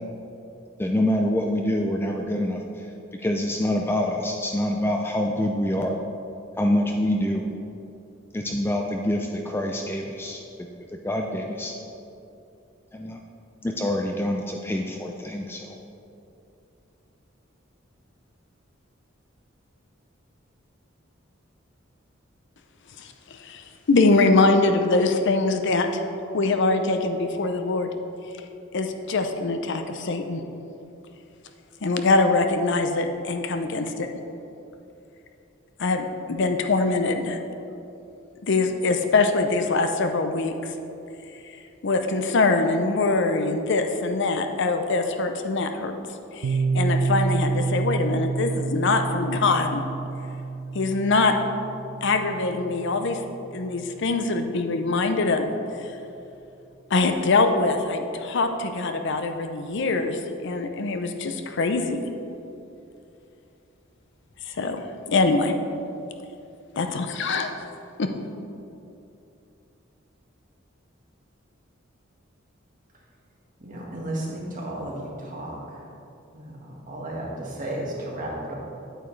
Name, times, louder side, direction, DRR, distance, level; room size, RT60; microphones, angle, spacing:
voice 1, 0.8-2.9 3.2-6.0 6.6-7.5 8.3-10.4 11.0-11.7 12.9-13.2 13.6-15.8, left 1 dB, 10° left, 2 dB, 0.4 m, -26 dB
voice 2, 23.0-26.0 26.3-27.9 28.7-30.4 31.8-34.1 35.8-37.4 38.4-40.5 41.8-45.9 46.3-49.8 50.7-51.3 52.0-53.2 53.5-55.5 55.8-55.9 56.9-62.1 64.4-64.8 65.1-65.5 66.8-67.5 68.0-68.1, left 3 dB, 65° left, 6 dB, 0.6 m, -23 dB
Piano, 46.4-53.9, right 4 dB, 90° right, 0.3 m, -28 dB
voice 3, 73.6-75.6 76.3-78.6, right 1 dB, 45° right, -3 dB, 1.8 m, -33 dB
9.1 x 8.9 x 3.2 m, 2.8 s
head